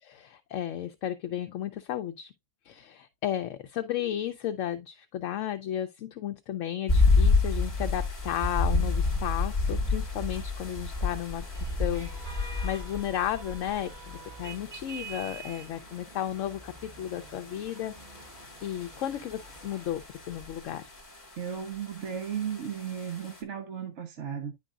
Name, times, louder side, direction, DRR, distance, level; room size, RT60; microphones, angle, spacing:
voice 1, 0.0-2.3 2.6-12.1 12.6-17.9 18.2-20.9, left 11 dB, 70° left, 0.9 m, -34 dB
sound 1, 6.9-23.4, left 3 dB, 30° left, 1.9 m, -30 dB
sound 2, 8.6-19.9, right 3 dB, 25° right, 3.9 m, -48 dB
voice 2, 21.4-24.5, right 8 dB, 60° right, 1.2 m, -35 dB
10.0 x 4.6 x 2.4 m
omnidirectional pair, 1.4 m